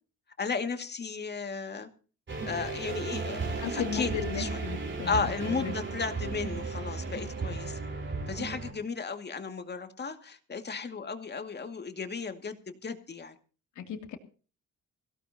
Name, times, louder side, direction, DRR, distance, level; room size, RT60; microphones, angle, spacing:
voice 1, 0.4-1.9 2.4-4.5 5.1-7.8 8.3-13.4, left 5 dB, 35° left, 7 dB, 2.3 m, -34 dB
sound 1, 2.3-8.7, right 4 dB, 40° right, 4.2 m, -35 dB
voice 2, 3.6-5.2 5.5-5.7 13.8-14.2, left 8 dB, 80° left, 5 dB, 2.8 m, -35 dB
22.0 x 17.0 x 2.9 m, 0.38 s
cardioid pair, 90°, 30 cm